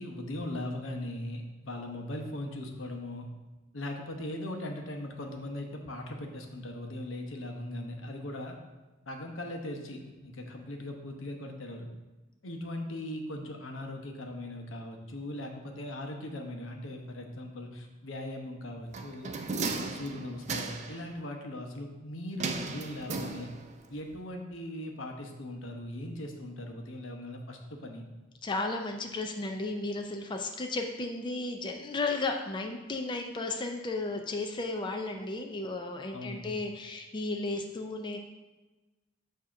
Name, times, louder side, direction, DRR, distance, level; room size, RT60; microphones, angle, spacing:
voice 1, 0.0-3.3 3.7-8.6 9.1-11.9 12.4-19.4 19.8-23.5 23.9-28.0 36.1-36.5, left 1 dB, 85° left, 3 dB, 0.9 m, -39 dB
sound 1, 18.9-21.0 22.4-23.8 24.1-24.2, right 4 dB, 35° right, 0.5 m, -35 dB
voice 2, 28.4-38.2, left 2 dB, 25° left, 3 dB, 0.4 m, -34 dB
7.4 x 2.8 x 5.8 m, 1.1 s
head